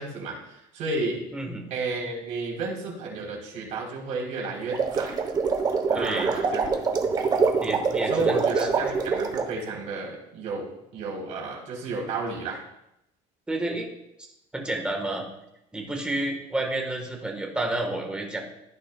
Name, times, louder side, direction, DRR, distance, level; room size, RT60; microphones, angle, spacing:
voice 1, 0.0-1.2 1.7-5.2 5.9-6.7 8.1-12.6, right 3 dB, 55° right, -2 dB, 3.6 m, -32 dB
voice 2, 1.3-1.6 5.9-6.3 7.6-8.7 13.5-13.9 14.5-15.3 15.7-18.4, right 2 dB, 5° right, 2 dB, 1.4 m, -30 dB
sound 1, 4.6-9.5, right 5 dB, 25° right, 1.0 m, -25 dB
14.5 x 8.9 x 2.3 m, 0.83 s
cardioid pair, 165°, 15 cm